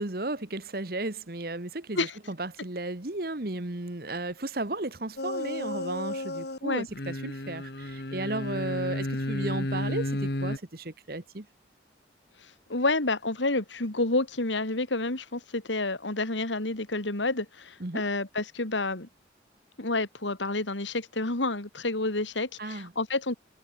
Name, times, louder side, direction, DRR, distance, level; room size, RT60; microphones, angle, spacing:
voice 1, 0.0-11.4 17.8-18.0 22.6-22.9, right 2 dB, 55° right, 1.5 m, -34 dB
sound 1, 5.2-6.6 6.9-10.6, left 1 dB, 60° left, 2.1 m, -32 dB
voice 2, 12.7-19.1 19.8-23.3, left 2 dB, 85° left, 2.9 m, -29 dB
head